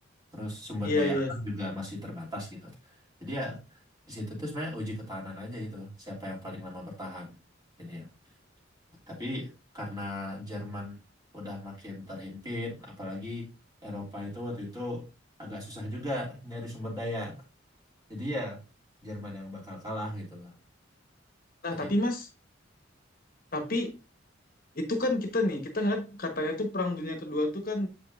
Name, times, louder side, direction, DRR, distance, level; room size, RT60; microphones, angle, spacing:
voice 1, 0.3-2.7 3.2-3.8 4.1-7.3 7.8-8.1 9.1-11.0 11.3-13.5 13.8-15.0 15.4-17.4 18.1-18.6 19.0-20.5 21.7-21.9, left 1 dB, 20° right, -3 dB, 2.9 m, -37 dB
voice 2, 0.8-1.3 21.6-22.3 23.5-23.9 24.7-27.9, left 1 dB, 50° left, 4 dB, 1.2 m, -29 dB
7.8 x 5.2 x 2.5 m, 0.29 s
head